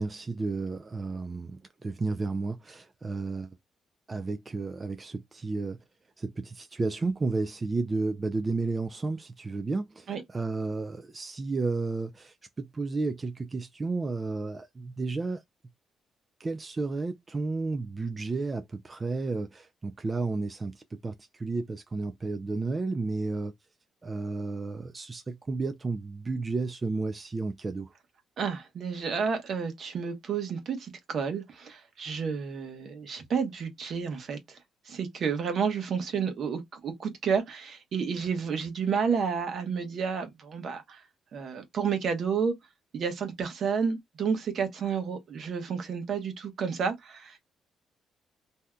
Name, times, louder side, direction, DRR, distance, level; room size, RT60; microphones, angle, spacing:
voice 1, 0.0-3.5 4.1-5.8 6.2-15.4 16.4-23.5 24.0-27.9, right 3 dB, 30° right, 0.4 m, -32 dB
voice 2, 28.4-34.6 34.9-41.0 41.3-42.5 42.9-47.4, right 6 dB, 60° right, 1.0 m, -31 dB
3.4 x 2.7 x 2.2 m
cardioid pair, 90°, 0 cm